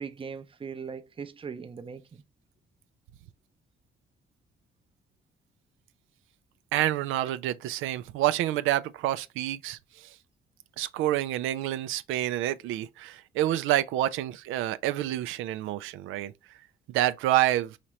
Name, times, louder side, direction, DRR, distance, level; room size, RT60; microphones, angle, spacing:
voice 1, 0.0-2.2, right 6 dB, 25° right, 0.6 m, -39 dB
voice 2, 6.7-9.8 10.8-16.3 16.9-17.8, right 13 dB, 90° right, 0.4 m, -28 dB
4.9 x 2.9 x 3.1 m
cardioid pair, 90°, 20 cm